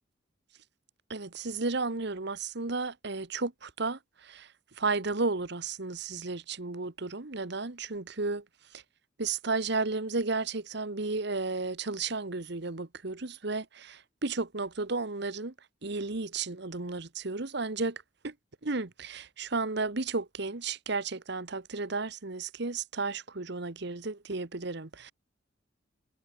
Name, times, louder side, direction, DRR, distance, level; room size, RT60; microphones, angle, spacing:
voice 1, 1.1-8.4 8.7-8.8 9.2-15.5 15.8-18.3 18.6-25.1, right 3 dB, 60° right, 1.4 m, -33 dB
head